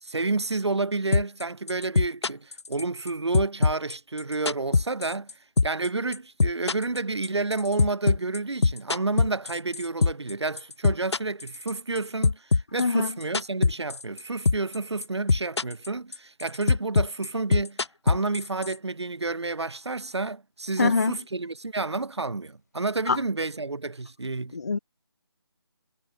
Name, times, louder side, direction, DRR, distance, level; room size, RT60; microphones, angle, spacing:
voice 1, 0.0-5.3 5.6-17.8 18.0-24.5, right 3 dB, 80° right, 3.4 m, -30 dB
sound 1, 1.1-1.4 1.7-3.1 3.3-5.3 5.6-5.9 6.1-10.3 10.6-12.0 12.2-14.2 14.5-14.8 15.0-15.9 16.1-18.7, left 4 dB, 85° left, 0.9 m, -22 dB
voice 2, 12.8-13.1 20.8-21.1 23.1-23.2 24.5-24.8, left 4 dB, 40° left, 0.5 m, -23 dB
figure-of-eight pair, 175°, 14 cm